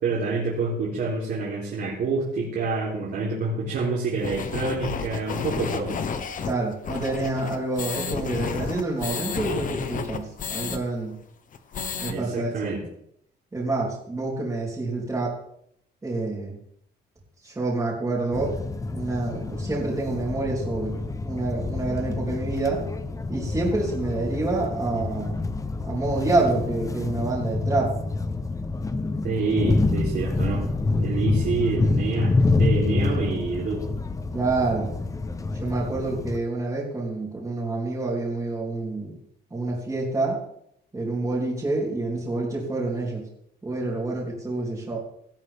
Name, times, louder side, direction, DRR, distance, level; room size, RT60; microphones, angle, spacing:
voice 1, 0.0-6.0 12.1-12.8 29.2-30.7 31.0-33.9, right 4 dB, 70° right, -6 dB, 3.7 m, -27 dB
sound 1, 4.2-10.8 11.1-11.2 11.5-12.1, left 6 dB, 50° left, 1.1 m, -31 dB
voice 2, 6.4-11.1 12.0-12.7 13.5-15.3 16.0-16.6 17.4-18.6 18.9-20.9 21.2-22.8 23.3-25.4 25.8-27.9 34.3-34.9 35.6-39.1 39.5-40.4 40.9-43.2 43.6-45.0, right 2 dB, 15° right, -8 dB, 3.6 m, -27 dB
sound 2, 18.3-36.4, left 3 dB, 20° left, 0.8 m, -27 dB
18.0 x 12.5 x 3.6 m, 0.72 s
cardioid pair, 165°, 18 cm